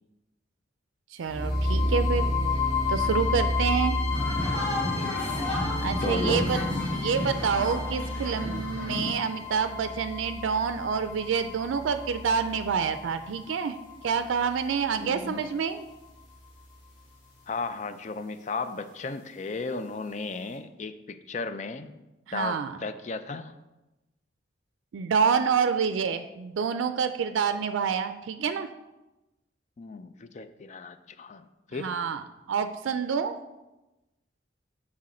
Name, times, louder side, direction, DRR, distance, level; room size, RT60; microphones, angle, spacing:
voice 1, 1.1-2.3 2.9-4.0 5.8-6.6 6.9-13.8 14.0-15.9 22.3-22.8 24.9-28.7 31.8-32.2 32.5-33.4, right 6 dB, 90° right, 10 dB, 0.4 m, -27 dB
sound 1, 1.2-15.2, left 2 dB, 70° left, 2.8 m, -31 dB
sound 2, 4.1-9.1, left 1 dB, 10° left, 1.8 m, -31 dB
voice 2, 6.0-6.4 15.0-15.4 17.5-21.9 22.3-23.5 29.8-31.9, left 3 dB, 40° left, 11 dB, 0.4 m, -35 dB
6.3 x 6.1 x 4.2 m, 1.0 s
head